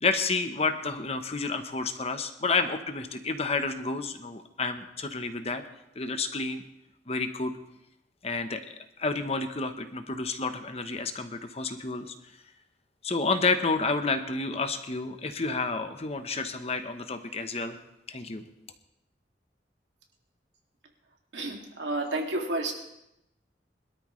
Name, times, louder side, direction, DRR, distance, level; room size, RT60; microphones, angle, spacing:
voice 1, 0.0-5.6 6.0-6.6 7.1-7.5 8.2-12.1 13.0-17.8 18.1-18.4, left 3 dB, 35° left, 8 dB, 1.0 m, -30 dB
voice 2, 21.3-22.7, right 2 dB, 90° right, 1 dB, 2.5 m, -30 dB
21.5 x 13.0 x 3.3 m, 0.84 s
head